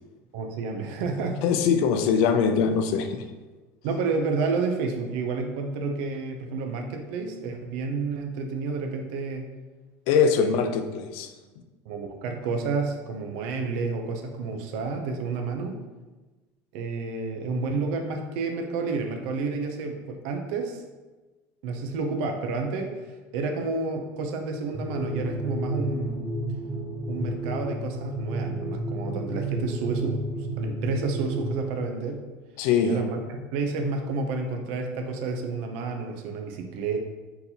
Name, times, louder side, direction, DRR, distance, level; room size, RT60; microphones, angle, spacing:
voice 1, 0.3-1.4 3.8-9.5 10.4-10.6 11.9-15.8 16.7-20.8 21.6-22.9 23.3-26.3 27.1-32.2 32.8-37.0, right 4 dB, 70° right, 4 dB, 0.5 m, -30 dB
voice 2, 1.4-3.2 10.1-11.3 32.6-33.0, left 6 dB, 65° left, 7 dB, 0.4 m, -22 dB
sound 1, 24.7-31.6, right 1 dB, 15° right, 0.3 m, -31 dB
4.2 x 3.9 x 2.8 m, 1.2 s
cardioid pair, 165°, 7 cm